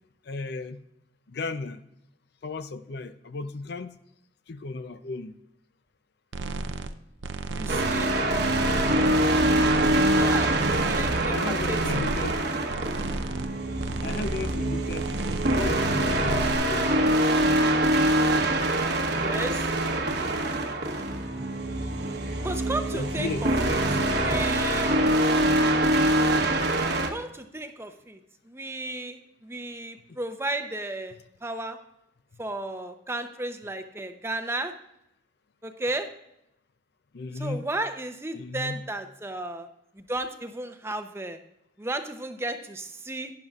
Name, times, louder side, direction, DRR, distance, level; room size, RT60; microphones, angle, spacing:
voice 1, 0.2-0.8 1.3-1.8 2.4-4.0 4.5-5.4 11.3-12.4 14.0-15.1 15.5-17.0 22.9-23.5 30.1-30.2 37.1-37.6 38.3-38.8, left 3 dB, 60° left, 11 dB, 0.6 m, -34 dB
sound 1, 6.3-6.9 7.2-8.0 8.3-9.1 9.4-10.2 10.5-11.3 11.6-12.4 12.7-13.5 13.8-14.6 14.9-15.7 16.0-16.5, right 3 dB, 75° right, 0.6 m, -33 dB
voice 2, 7.5-8.1 10.2-12.0 19.1-19.7 22.4-23.8 24.1-25.0 27.1-28.2 28.5-31.8 32.4-34.7 35.6-36.1 37.4-39.7 40.0-41.4 41.8-43.3, right 2 dB, 15° right, 6 dB, 0.7 m, -34 dB
sound 2, 7.7-27.1, right 1 dB, 55° right, 1.2 m, -24 dB
11.5 x 10.5 x 2.4 m, 0.83 s
head